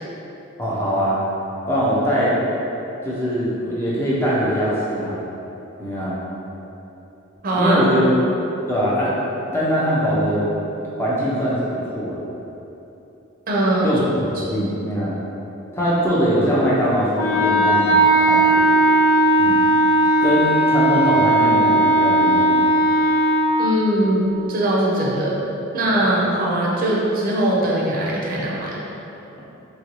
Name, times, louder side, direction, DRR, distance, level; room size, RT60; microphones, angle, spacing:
voice 1, 0.6-1.2 1.7-2.3 3.0-5.2 5.8-6.2 7.5-8.1 8.7-9.1 9.5-10.5 11.0-12.2 13.8-15.1 15.7-18.7 19.4-19.6 20.2-22.5, equal, 10° left, -8 dB, 0.5 m, -21 dB
voice 2, 7.4-7.8 13.5-13.9 14.4-14.5 23.6-25.4 25.7-28.8, right 1 dB, 40° right, -4 dB, 0.5 m, -21 dB
Wind instrument woodwind instrument, 17.2-23.5, right 1 dB, 75° left, 0.6 m, -16 dB
3.0 x 2.6 x 3.0 m, 3.0 s
head